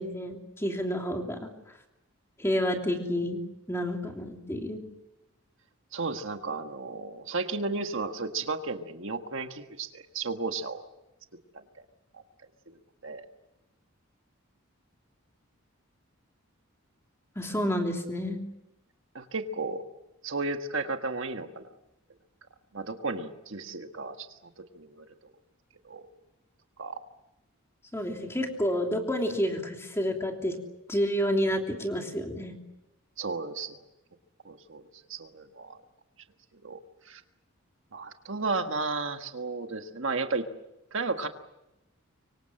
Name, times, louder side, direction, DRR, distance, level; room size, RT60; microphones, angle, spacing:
voice 1, 0.0-1.5 2.4-3.4 3.7-4.8 17.3-18.4 27.9-30.6 30.9-32.5, equal, 10° left, 2 dB, 3.1 m, -29 dB
voice 2, 5.9-10.8 12.1-12.2 12.7-12.8 13.0-13.2 19.1-19.8 20.2-21.7 22.7-24.4 24.7-25.0 25.8-26.1 26.8-27.0 33.2-33.8 34.4-34.8 35.1-35.8 36.6-36.8 37.0-37.2 37.9-40.4 40.9-41.3, right 3 dB, 65° right, 6 dB, 1.5 m, -33 dB
25.5 x 24.5 x 7.8 m, 0.92 s
head